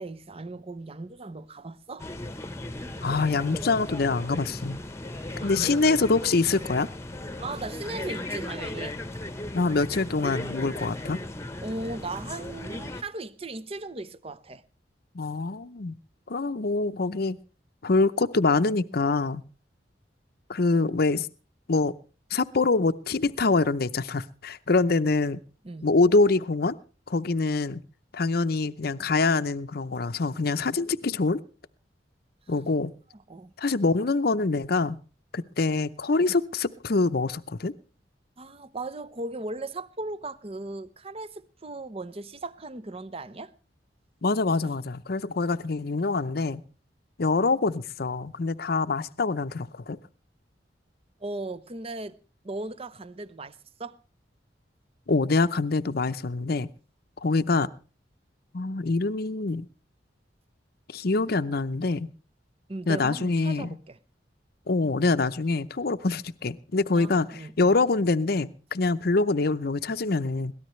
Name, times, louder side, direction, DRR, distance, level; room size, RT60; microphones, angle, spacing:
voice 1, 0.0-2.1 5.4-5.8 7.4-8.9 11.6-14.6 25.6-25.9 32.5-32.6 33.3-33.5 38.4-43.5 44.6-44.7 51.2-52.2 52.4-54.0 62.7-64.0 66.9-67.7, right 2 dB, 35° right, 0.8 m, -37 dB
sound 1, 2.0-13.0, left 1 dB, 15° left, 1.0 m, -36 dB
voice 2, 3.0-4.8 5.4-6.9 9.5-11.2 15.1-15.9 16.3-17.4 17.8-19.4 20.5-21.3 21.7-21.9 22.3-25.4 25.8-26.8 27.1-27.8 28.1-31.4 32.5-32.9 33.6-35.0 35.3-37.7 44.2-46.6 47.2-50.0 55.1-56.7 57.2-57.7 58.5-59.7 60.9-62.1 62.9-63.8 64.7-70.5, left 3 dB, 55° left, 0.7 m, -25 dB
22.5 x 17.5 x 3.2 m
head